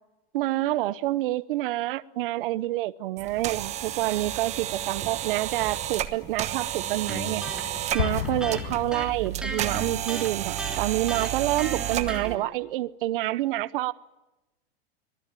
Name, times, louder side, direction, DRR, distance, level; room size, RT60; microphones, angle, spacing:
voice 1, 0.3-7.4 7.9-13.9, right 16 dB, 60° right, 0.9 m, -28 dB
sound 1, 3.2-12.4, right 11 dB, 20° right, 1.2 m, -32 dB
Electric guitar, 7.1-12.4, right 1 dB, ahead, 3.4 m, -36 dB
Explosion, 8.0-9.7, left 8 dB, 85° left, 5.9 m, -32 dB
25.5 x 19.0 x 9.0 m
supercardioid pair, 165°, 31 cm